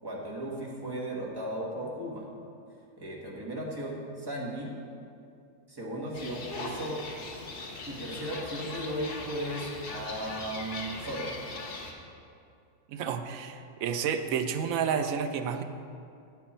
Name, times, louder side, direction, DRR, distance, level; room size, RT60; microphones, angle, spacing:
voice 1, 0.0-2.2 3.0-4.7 5.7-7.0 7.9-11.3, right 1 dB, 15° right, -4 dB, 1.4 m, -36 dB
sound 1, 6.1-11.9, left 3 dB, 45° left, 0.8 m, -40 dB
voice 2, 12.9-15.6, right 7 dB, 70° right, 7 dB, 0.8 m, -30 dB
9.2 x 8.0 x 4.3 m, 2.5 s
omnidirectional pair, 1.9 m